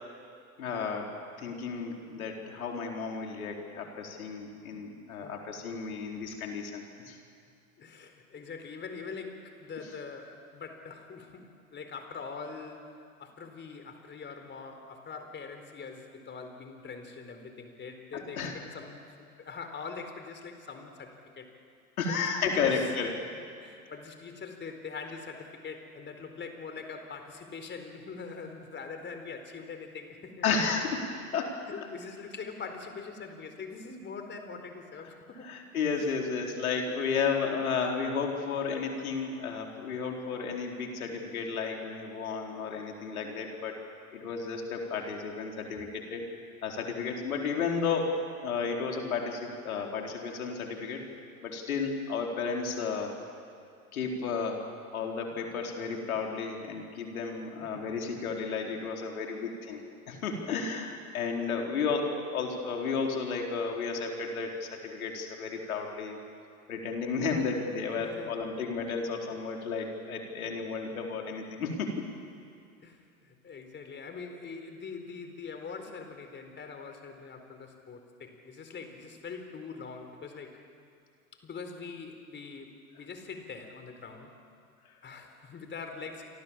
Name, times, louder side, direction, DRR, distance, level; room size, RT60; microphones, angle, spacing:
voice 1, 0.6-1.1 1.4-7.2 18.1-18.5 22.0-23.3 30.4-31.6 35.4-43.8 44.1-51.0 51.4-53.1 53.9-66.2 66.7-72.0 84.8-84.9, left 5 dB, 75° left, 1 dB, 4.5 m, -33 dB
voice 2, 7.8-21.5 22.1-22.8 23.6-30.5 31.7-35.5 35.9-36.0 57.6-57.9 68.0-68.5 72.8-80.6 81.3-84.3 85.0-86.3, left 5 dB, 25° left, 6 dB, 4.3 m, -43 dB
28.5 x 25.0 x 7.5 m, 2.3 s
hypercardioid pair, 85°, 43 cm